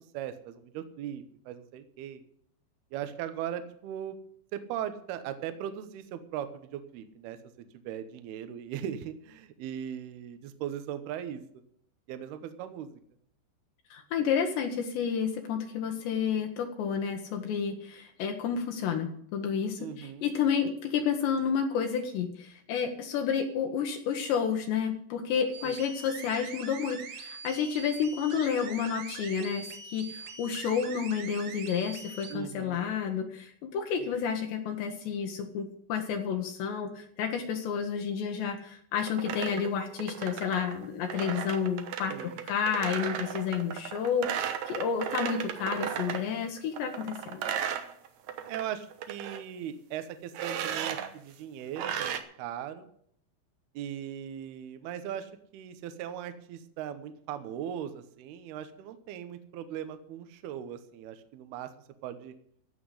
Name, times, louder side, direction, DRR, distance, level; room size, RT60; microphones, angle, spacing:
voice 1, 0.0-2.2 2.9-4.2 4.5-7.4 7.7-11.4 12.1-13.0 19.8-20.3 25.6-25.8 32.3-32.9 34.0-34.2 42.1-42.4 48.5-52.9 53.7-61.7 62.0-62.3, right 10 dB, 70° right, 10 dB, 2.7 m, -39 dB
voice 2, 13.9-47.4, left 7 dB, 75° left, 3 dB, 3.5 m, -30 dB
sound 1, 25.5-32.4, right 5 dB, 55° right, 2.5 m, -43 dB
sound 2, 39.0-46.3 46.7-48.6 48.9-49.4 50.3-51.1 51.8-52.2, right 9 dB, 90° right, 1.6 m, -35 dB
16.0 x 6.0 x 9.9 m, 0.66 s
omnidirectional pair, 5.1 m